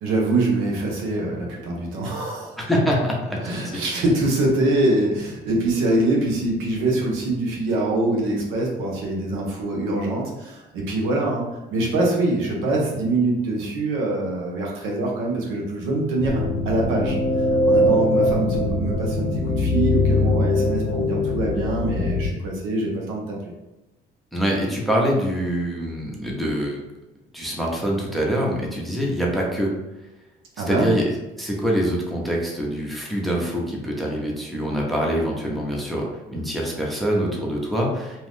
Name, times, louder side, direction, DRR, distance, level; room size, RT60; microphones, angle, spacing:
voice 1, 0.0-2.6 3.4-11.4 11.7-17.2 17.7-23.5 30.6-31.0, right 2 dB, 85° right, -1 dB, 0.8 m, -24 dB
voice 2, 2.6-4.0 24.3-26.8 27.3-29.7 30.7-31.0 31.4-38.3, equal, ahead, -2 dB, 0.8 m, -25 dB
sound 1, 16.2-22.3, left 1 dB, 65° left, 0.6 m, -21 dB
2.7 x 2.4 x 3.4 m, 1.0 s
cardioid pair, 90°, 20 cm